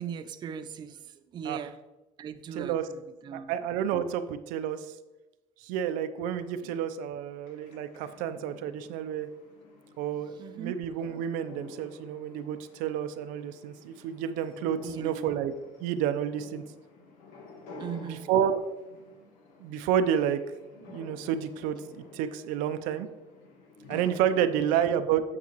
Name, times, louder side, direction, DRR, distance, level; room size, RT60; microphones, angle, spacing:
voice 1, 0.0-1.8 2.2-3.6 6.6-6.7 10.4-10.8 14.8-15.3 17.8-18.3 24.6-25.0, right 7 dB, 35° right, 9 dB, 0.5 m, -39 dB
voice 2, 3.3-4.9 5.6-9.3 10.0-15.5 15.8-16.6 18.0-18.7 19.6-20.4 20.8-23.1 23.9-25.2, right 9 dB, 85° right, 10 dB, 0.6 m, -30 dB
sound 1, 6.4-24.6, left 3 dB, 85° left, 1.6 m, -51 dB
8.3 x 7.5 x 3.0 m, 1.1 s
cardioid pair, 140°, 13 cm